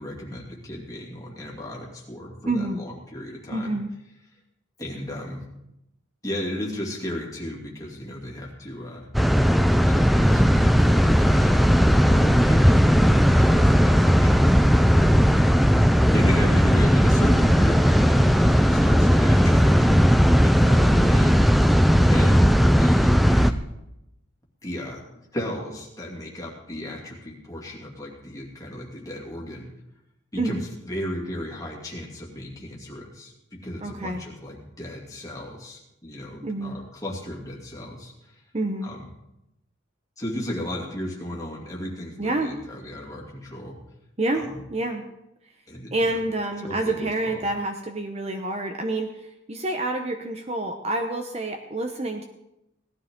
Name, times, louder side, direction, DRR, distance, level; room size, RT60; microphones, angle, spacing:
voice 1, 0.0-3.8 4.8-5.5 6.2-9.1 9.8-11.6 12.0-15.7 16.1-20.0 20.4-21.4 22.0-23.6 24.6-25.0 25.3-29.7 30.3-38.4 38.8-39.1 40.2-43.8 44.3-44.6 45.7-46.2 46.6-47.4, left 1 dB, 15° left, -2 dB, 2.6 m, -34 dB
voice 2, 2.4-2.8 3.5-3.9 30.4-30.6 33.8-34.2 36.4-36.8 38.5-38.9 42.2-42.5 44.2-44.4 44.7-45.0 45.9-49.1 49.5-52.2, right 2 dB, 30° right, 5 dB, 0.8 m, -27 dB
sound 1, 9.1-23.5, equal, ahead, 0.4 m, -17 dB
17.5 x 12.5 x 3.7 m, 0.88 s
head